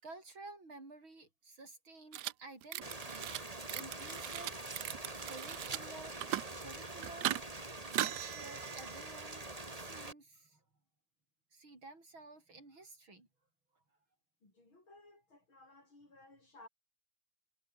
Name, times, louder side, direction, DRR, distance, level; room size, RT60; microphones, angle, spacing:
voice 1, 0.0-4.7 5.3-6.3 6.6-7.7 8.0-10.6 11.5-13.3, right 3 dB, 85° right, 7.5 m, -53 dB
sound 1, 2.1-2.3 2.6-3.4 3.7-5.8 6.1-6.6 7.0-7.4 7.8-9.3, right 14 dB, 70° right, 1.1 m, -39 dB
Rain, 2.8-10.1, right 2 dB, 20° right, 2.5 m, -45 dB
voice 2, 14.4-16.7, left 2 dB, 80° left, 9.0 m, -59 dB
omnidirectional pair, 2.2 m